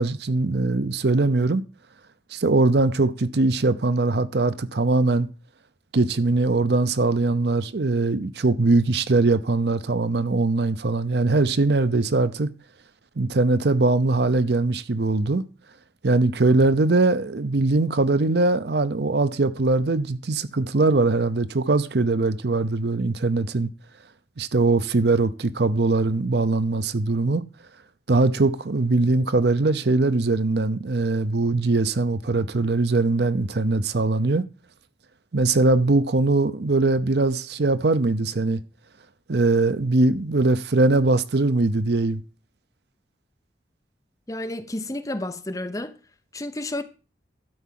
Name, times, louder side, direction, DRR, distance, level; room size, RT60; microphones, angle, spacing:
voice 1, 0.0-1.6 2.3-5.3 5.9-12.5 13.2-15.4 16.0-23.7 24.4-27.4 28.1-34.4 35.3-38.6 39.3-42.2, right 3 dB, 70° right, 0.7 m, -21 dB
voice 2, 44.3-45.9 46.3-46.8, left 1 dB, 20° left, 0.8 m, -31 dB
12.0 x 4.7 x 7.6 m
head